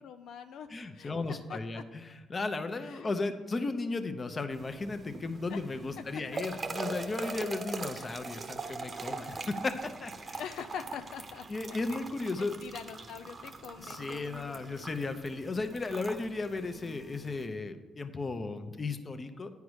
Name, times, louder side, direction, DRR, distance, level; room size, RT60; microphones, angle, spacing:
voice 1, 0.0-1.8 2.7-3.1 5.5-5.6 6.9-7.2 7.5-8.2 10.4-12.0 12.4-14.9, left 7 dB, 80° left, 8 dB, 0.4 m, -45 dB
voice 2, 0.7-2.0 2.3-9.7 10.0-10.4 11.5-12.6 13.8-19.5, left 3 dB, 35° left, 9 dB, 0.8 m, -35 dB
sound 1, 4.5-17.5, right 3 dB, 35° right, 0.8 m, -42 dB
9.5 x 4.7 x 6.4 m, 1.3 s
cardioid pair, 90°, 0 cm